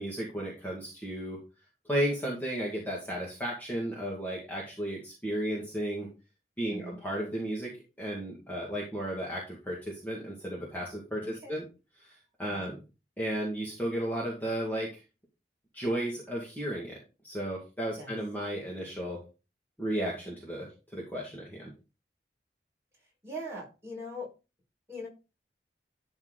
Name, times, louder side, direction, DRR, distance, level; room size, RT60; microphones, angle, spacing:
voice 1, 0.0-1.4 1.9-6.1 6.6-7.7 8.0-11.7 12.0-12.1 12.4-12.8 13.2-14.9 15.7-17.0 17.2-19.2 19.8-21.7, right 1 dB, 10° left, -4 dB, 2.1 m, -34 dB
voice 2, 23.2-24.3 24.9-25.1, equal, 15° right, -4 dB, 5.3 m, -40 dB
12.0 x 4.4 x 4.1 m, 0.29 s
head